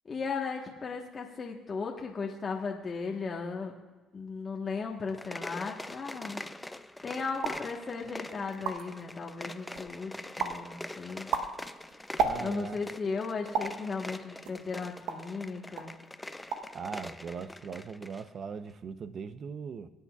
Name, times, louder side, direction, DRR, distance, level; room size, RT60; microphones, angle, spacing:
voice 1, 0.0-3.7 4.1-6.4 7.0-11.3 12.4-15.9, left 4 dB, 35° left, 0 dB, 1.2 m, -36 dB
sound 1, 5.0-18.3, left 1 dB, 10° left, 0.5 m, -44 dB
sound 2, 7.4-7.7 8.2-8.3 8.5-9.0 9.5-10.0 10.4-10.7 11.1-12.8 13.5-13.8 14.4-15.4 15.8-16.0 16.3-16.8 17.0-17.5, right 5 dB, 75° right, 0.9 m, -33 dB
voice 2, 12.2-12.8 16.7-19.9, right 6 dB, 50° right, 12 dB, 0.7 m, -40 dB
23.0 x 8.5 x 2.4 m, 1.2 s
cardioid pair, 85°, 0 cm